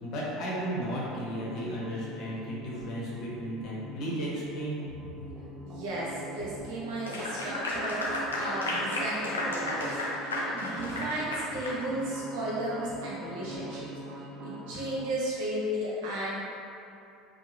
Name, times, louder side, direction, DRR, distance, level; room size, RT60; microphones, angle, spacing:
voice 1, 0.0-4.8, equal, 50° left, -5 dB, 0.8 m, -34 dB
sound 1, 0.9-15.1, right 2 dB, 40° right, 0.4 m, -42 dB
voice 2, 5.6-8.1 8.3-10.0 10.5-13.9 14.4-16.4, right 1 dB, 60° right, -7 dB, 0.8 m, -34 dB
Clapping / Applause, 7.0-11.8, left 1 dB, 80° left, 0.4 m, -33 dB
3.4 x 2.1 x 3.2 m, 2.6 s
figure-of-eight pair, 70°, 0 cm